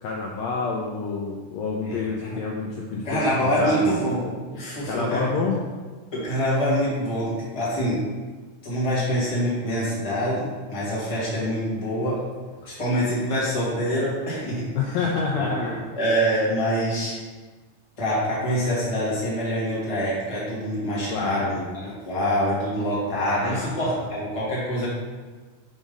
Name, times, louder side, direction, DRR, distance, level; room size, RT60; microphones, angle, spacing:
voice 1, 0.0-3.9 4.9-5.6 14.7-15.8 21.1-21.5 23.4-23.7, left 4 dB, 80° left, -2 dB, 1.6 m, -28 dB
voice 2, 1.8-2.4 3.0-5.3 6.1-8.1 8.6-12.2 12.6-14.7 15.3-17.2 18.0-24.9, equal, 20° left, -8 dB, 1.0 m, -25 dB
5.1 x 3.6 x 5.1 m, 1.4 s
omnidirectional pair, 3.6 m